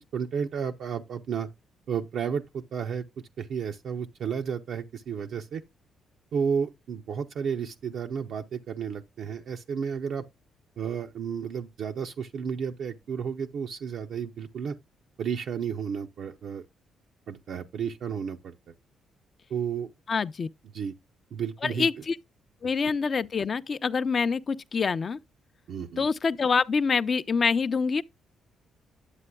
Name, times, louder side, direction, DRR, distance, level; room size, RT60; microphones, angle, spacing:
voice 1, 0.1-1.5 1.9-3.0 3.4-5.6 6.3-10.3 10.8-14.8 15.2-16.6 17.3-18.5 19.5-19.9 20.7-20.9 21.3-21.9 25.7-26.1, right 7 dB, 70° right, 0.5 m, -32 dB
voice 2, 20.1-20.5 21.6-22.2 22.6-25.2 26.0-28.0, left 5 dB, 40° left, 0.4 m, -26 dB
9.8 x 7.4 x 2.2 m
cardioid pair, 90°, 0 cm